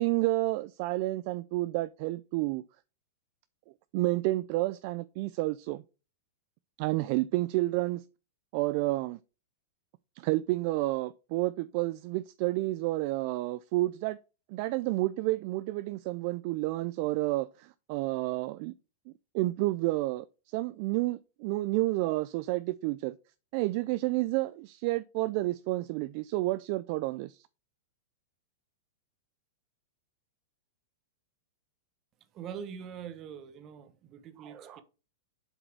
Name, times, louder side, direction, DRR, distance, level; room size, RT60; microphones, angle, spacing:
voice 1, 0.0-2.6 3.9-5.8 6.8-8.0 8.5-9.2 10.2-14.2 14.5-18.7 19.1-23.1 23.5-27.5, right 19 dB, 50° right, 0.3 m, -30 dB
voice 2, 32.3-34.8, right 7 dB, 35° right, 1.0 m, -43 dB
7.8 x 4.0 x 4.5 m
hypercardioid pair, 120°, 0 cm